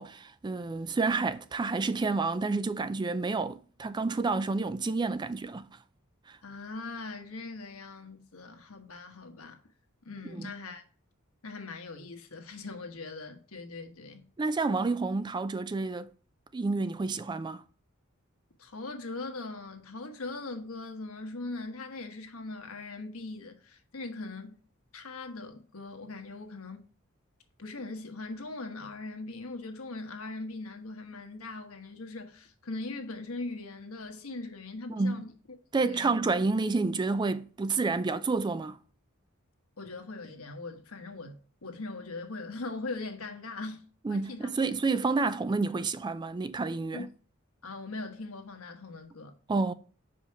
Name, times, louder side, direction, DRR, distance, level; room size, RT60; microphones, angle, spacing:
voice 1, 0.0-5.7 6.3-6.4 10.3-10.5 14.4-16.1 16.5-17.6 34.9-35.2 35.7-38.8 44.0-47.1 49.5-49.7, right 3 dB, 20° right, 0.3 m, -29 dB
voice 2, 6.4-9.6 10.0-10.8 11.4-14.2 18.6-24.6 24.9-26.9 27.6-35.3 35.8-36.2 39.8-43.8 44.1-44.5 46.9-47.0 47.6-49.3, left 3 dB, 90° left, 1.3 m, -40 dB
5.6 x 5.1 x 4.8 m
head